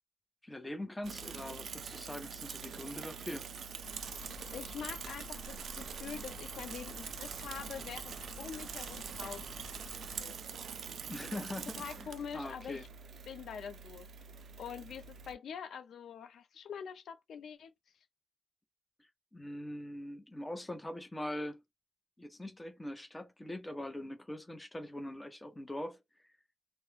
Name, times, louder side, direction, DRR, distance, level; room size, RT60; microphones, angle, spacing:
voice 1, 0.4-3.5 11.1-12.9 19.3-21.6 22.2-26.0, left 1 dB, 15° left, 0.7 m, -42 dB
Bicycle / Mechanisms, 1.0-15.3, right 6 dB, 80° right, 0.3 m, -44 dB
sound 1, 3.8-10.2, left 3 dB, 70° left, 0.9 m, -51 dB
voice 2, 4.5-9.4 10.2-10.4 11.2-11.4 11.8-12.9 13.3-14.1 14.6-17.7, left 7 dB, 90° left, 0.3 m, -45 dB
2.3 x 2.1 x 3.1 m
cardioid pair, 105°, 0 cm